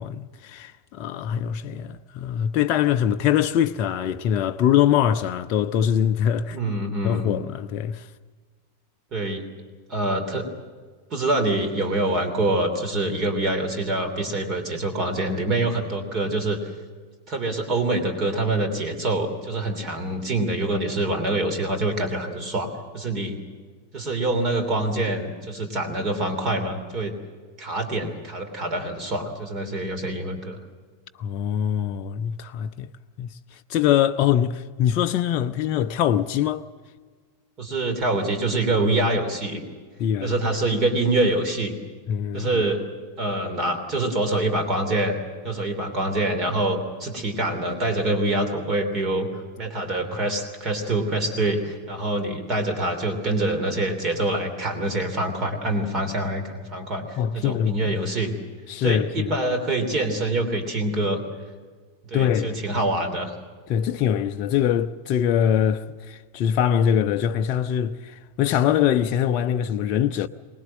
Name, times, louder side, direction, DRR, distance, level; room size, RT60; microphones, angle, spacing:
voice 1, 0.0-6.6 7.0-8.1 31.2-32.9 33.2-36.6 40.0-40.3 42.1-42.5 57.2-57.9 58.7-59.4 62.1-62.6 63.7-70.3, left 9 dB, 40° left, 0.6 m, -23 dB
voice 2, 6.5-7.4 9.1-9.4 9.9-10.5 11.1-16.6 17.3-23.4 23.9-27.1 27.6-30.6 37.6-39.6 40.2-41.7 42.3-42.8 43.2-45.2 45.4-58.3 58.8-61.2 62.1-63.3, right 2 dB, 35° right, 3.2 m, -25 dB
24.0 x 19.5 x 7.6 m
figure-of-eight pair, 90°, 0 cm